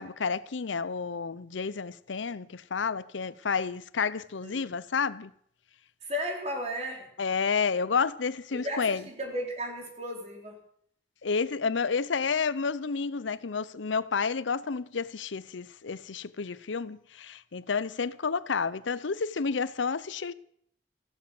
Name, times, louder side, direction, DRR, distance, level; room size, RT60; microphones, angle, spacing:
voice 1, 0.0-5.3 7.2-9.0 11.2-20.3, left 5 dB, 90° left, 0.7 m, -30 dB
voice 2, 4.4-4.7 6.0-7.1 8.5-10.6, equal, 35° right, 3.9 m, -35 dB
15.0 x 12.5 x 7.7 m
head